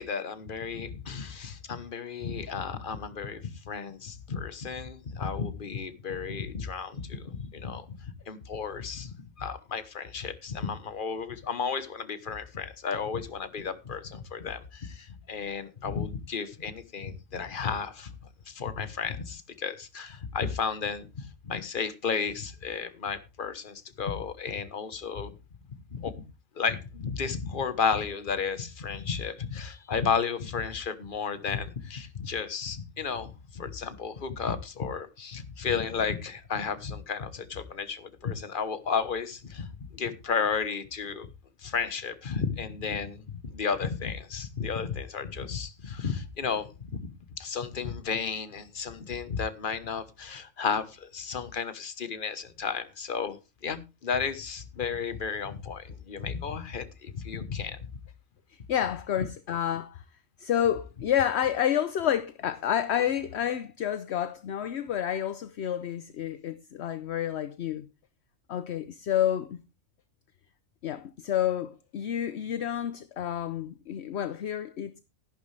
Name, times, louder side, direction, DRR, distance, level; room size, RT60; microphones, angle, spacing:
voice 1, 0.0-8.0 8.3-18.1 18.5-25.3 25.9-26.1 26.6-39.7 39.9-41.3 41.6-47.1 47.4-53.4 53.6-57.8, left 6 dB, 40° left, 1.3 m, -33 dB
voice 2, 58.7-60.0 60.4-67.9 68.5-69.6 70.8-75.0, left 10 dB, 60° left, 0.9 m, -29 dB
13.5 x 11.5 x 3.3 m
omnidirectional pair, 1.4 m